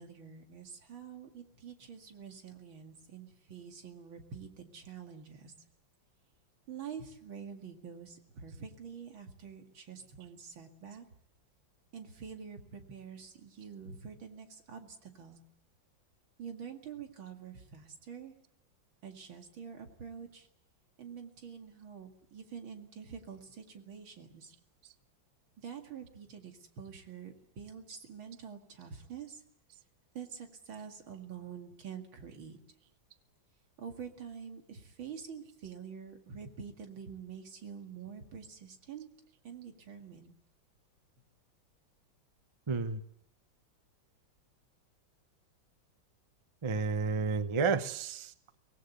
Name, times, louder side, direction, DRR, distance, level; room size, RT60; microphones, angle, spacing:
voice 1, 0.0-5.5 6.7-11.1 11.9-15.4 16.4-18.3 19.0-20.5 21.0-24.5 25.6-29.4 30.1-32.6 33.8-39.1 39.4-40.3, right 7 dB, 90° right, 3.0 m, -46 dB
voice 2, 42.7-43.0 46.6-48.3, right 4 dB, 35° right, 0.5 m, -31 dB
24.5 x 18.5 x 8.1 m
omnidirectional pair, 2.1 m